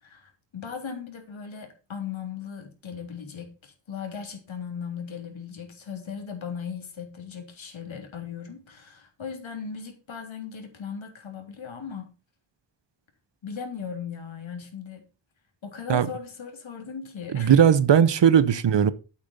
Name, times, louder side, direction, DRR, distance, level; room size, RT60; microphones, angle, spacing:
voice 1, 0.0-12.1 13.4-15.0 15.6-17.5, left 6 dB, 80° left, 3.5 m, -38 dB
voice 2, 17.3-18.9, right 8 dB, 65° right, 0.9 m, -18 dB
10.5 x 8.5 x 4.1 m
wide cardioid pair, 140°, 47 cm